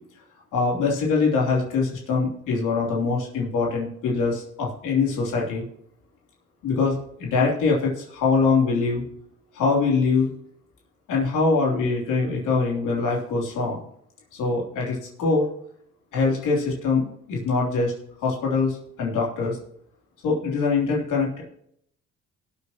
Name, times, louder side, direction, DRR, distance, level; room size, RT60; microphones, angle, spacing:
voice 1, 0.5-5.6 6.6-9.0 9.5-10.3 11.1-13.8 14.3-15.4 16.1-18.0 18.2-19.6 20.2-21.4, left 4 dB, 90° left, -3 dB, 3.2 m, -23 dB
19.0 x 8.4 x 2.9 m, 0.69 s
cardioid pair, 90°, 30 cm